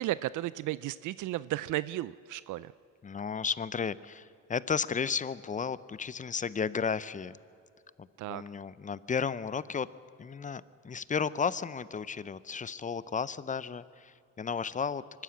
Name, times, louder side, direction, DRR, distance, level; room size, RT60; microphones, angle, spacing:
voice 1, 0.0-2.7 8.2-8.4, right 15 dB, 80° right, 17 dB, 0.5 m, -34 dB
voice 2, 3.0-7.4 8.0-9.9 10.2-15.0, left 6 dB, 25° left, 17 dB, 0.6 m, -33 dB
24.0 x 12.5 x 8.6 m, 2.4 s
cardioid pair, 90°, 30 cm